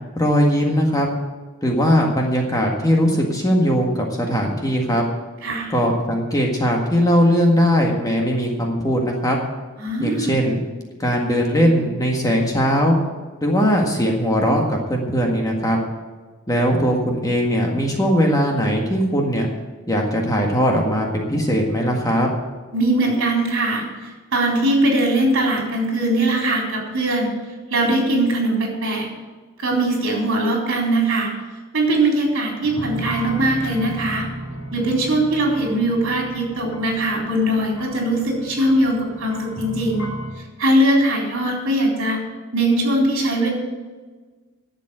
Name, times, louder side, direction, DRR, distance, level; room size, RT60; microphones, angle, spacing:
voice 1, 0.1-1.1 1.6-5.0 5.7-9.4 10.0-10.6 11.0-13.0 13.4-15.8 16.5-19.5 19.9-22.3, equal, 15° left, 0 dB, 1.8 m, -19 dB
voice 2, 5.4-5.7 9.8-10.4 22.7-27.3 27.7-29.1 29.6-31.3 31.7-34.3 34.7-40.0 40.6-42.2 42.5-43.5, right 1 dB, 60° right, -1 dB, 4.1 m, -20 dB
sound 1, 32.6-40.3, right 1 dB, 75° left, 2.8 m, -34 dB
11.5 x 7.5 x 9.0 m, 1.4 s
head